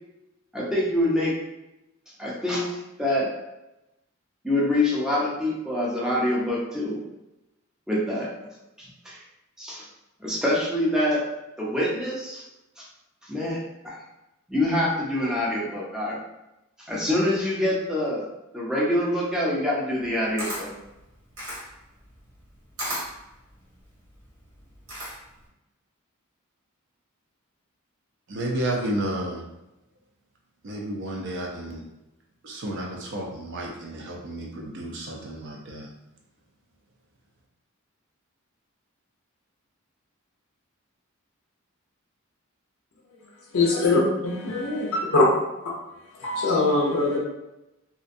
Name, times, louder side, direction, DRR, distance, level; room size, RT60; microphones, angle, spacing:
voice 1, 0.5-1.4 2.2-2.7 3.0-3.3 4.4-7.0 7.9-8.3 8.8-9.2 9.6-9.9 10.2-11.2 11.6-12.4 12.8-12.9 13.2-14.0 14.5-16.2 16.9-18.2 18.5-20.7, left 1 dB, 5° right, -6 dB, 0.6 m, -25 dB
Camera, 20.0-25.4, equal, 80° right, 1.1 m, -36 dB
voice 2, 28.3-29.4 30.6-31.8 32.4-35.9, right 1 dB, 60° right, -1 dB, 0.5 m, -31 dB
voice 3, 43.5-45.3 45.6-45.8 46.2-47.2, left 2 dB, 80° left, -3 dB, 0.5 m, -22 dB
2.5 x 2.1 x 2.5 m, 0.94 s
head